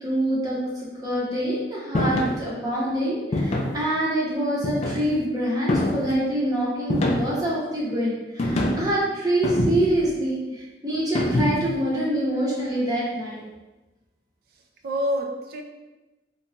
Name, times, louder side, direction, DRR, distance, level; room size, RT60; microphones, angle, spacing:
voice 1, 0.0-13.4, right 1 dB, 20° right, -6 dB, 0.7 m, -25 dB
sound 1, 1.9-2.4 3.3-3.8 4.6-5.2 5.7-6.1 6.9-7.5 8.4-8.9 9.4-10.1 11.1-11.7, left 1 dB, 35° left, 0.3 m, -24 dB
voice 2, 14.5-15.6, equal, 60° right, 4 dB, 0.4 m, -28 dB
2.8 x 2.2 x 2.6 m, 1.1 s
head